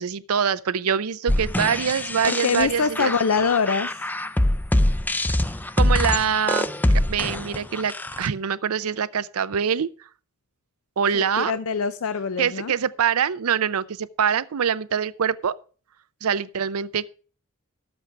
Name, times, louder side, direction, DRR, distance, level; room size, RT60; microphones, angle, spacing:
voice 1, 0.0-3.1 5.8-9.9 11.0-11.5 12.4-15.6 16.2-17.1, right 7 dB, 80° right, 0.5 m, -24 dB
sound 1, 1.3-8.3, left 1 dB, 10° left, 0.4 m, -24 dB
voice 2, 2.2-4.1 11.1-12.7, left 5 dB, 70° left, 0.5 m, -24 dB
12.0 x 8.0 x 4.6 m
head